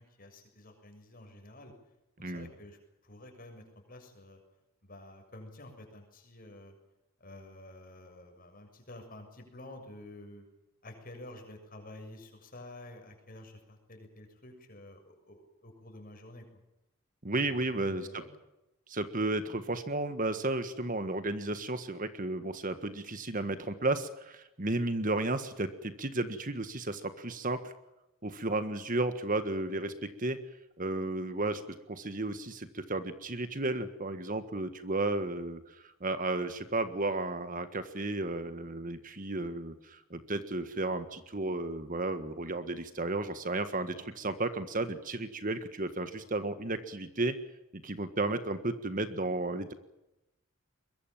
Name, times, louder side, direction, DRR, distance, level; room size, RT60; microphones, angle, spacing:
voice 1, 0.0-1.7 2.3-4.4 4.8-6.7 7.2-10.5 10.8-16.6 17.3-18.3, left 1 dB, 40° left, 5 dB, 6.9 m, -50 dB
voice 2, 17.2-18.2 18.9-27.7 28.2-30.4 30.8-31.6 31.9-47.4 47.7-49.7, right 2 dB, 40° right, 10 dB, 1.6 m, -33 dB
23.5 x 22.0 x 7.4 m, 0.91 s
head